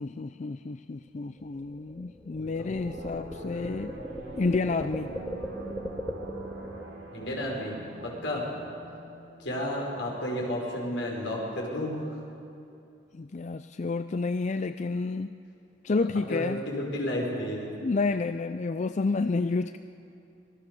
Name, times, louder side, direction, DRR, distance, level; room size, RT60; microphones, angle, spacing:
voice 1, 0.0-3.9 4.4-5.1 13.1-15.3 15.8-16.6 17.8-19.8, left 3 dB, 40° left, 10 dB, 0.4 m, -30 dB
sound 1, 1.1-6.8, equal, 5° left, 1.9 m, -38 dB
voice 2, 2.4-2.7 7.1-7.7 8.0-8.5 9.4-12.2 16.3-17.7, left 1 dB, 75° left, -1 dB, 5.5 m, -32 dB
sound 2, 2.7-10.1, right 2 dB, 85° right, 3.1 m, -45 dB
25.5 x 19.5 x 6.9 m, 2.6 s
head